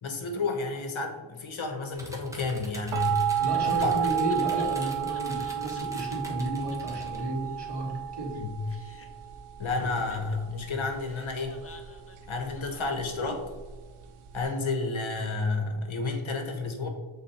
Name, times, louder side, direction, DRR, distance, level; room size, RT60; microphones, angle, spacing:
voice 1, 0.0-3.2 3.6-3.9 8.3-8.6 9.6-11.6 12.3-13.4 14.3-16.9, left 3 dB, 70° left, 4 dB, 1.2 m, -31 dB
sound 1, 1.9-7.2, right 1 dB, 5° right, 1.2 m, -45 dB
sound 2, 2.9-14.4, right 10 dB, 90° right, 0.7 m, -32 dB
Laughter, 3.3-5.8 6.1-6.2 6.4-6.5 6.7-6.8 7.1-8.4 8.6-9.3 9.8-13.5, left 2 dB, 30° left, 0.7 m, -50 dB
voice 2, 3.4-8.4, right 1 dB, 55° right, -1 dB, 1.9 m, -32 dB
7.3 x 4.2 x 4.2 m, 1.3 s
wide cardioid pair, 110°, 49 cm